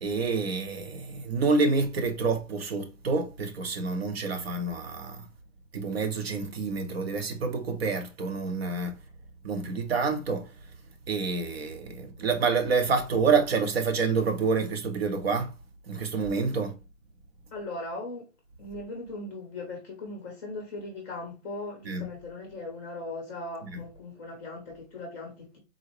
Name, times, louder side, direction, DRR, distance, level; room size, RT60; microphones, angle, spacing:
voice 1, 0.0-5.2 5.7-9.0 9.4-10.5 11.1-15.5 15.9-16.8 21.9-22.1 23.7-23.8, right 4 dB, 50° right, 0.7 m, -28 dB
voice 2, 17.5-18.3 18.6-25.6, left 2 dB, 15° left, 0.6 m, -39 dB
3.8 x 2.1 x 2.9 m
hypercardioid pair, 140°, 41 cm